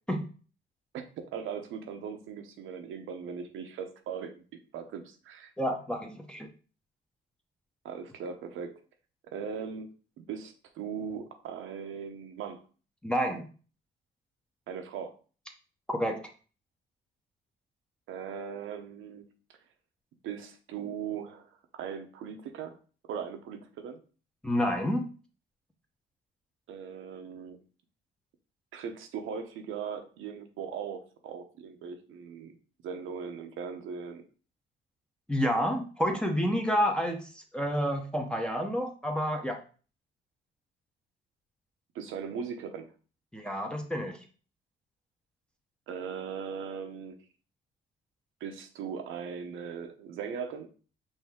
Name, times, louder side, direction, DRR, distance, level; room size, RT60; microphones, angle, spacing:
voice 1, 0.9-4.4 4.7-5.5 7.8-8.7 9.2-12.6 14.7-15.1 18.1-19.3 20.2-21.5 21.7-22.8 23.0-24.0 26.7-27.6 28.7-32.5 32.8-34.2 41.9-42.9 45.9-47.2 48.4-50.7, right 7 dB, 85° right, 6 dB, 0.8 m, -39 dB
voice 2, 5.6-6.5 13.0-13.5 15.9-16.3 24.4-25.1 35.3-39.6 43.3-44.2, equal, 5° left, 3 dB, 0.8 m, -29 dB
5.4 x 2.7 x 3.6 m, 0.38 s
cardioid pair, 90°, 20 cm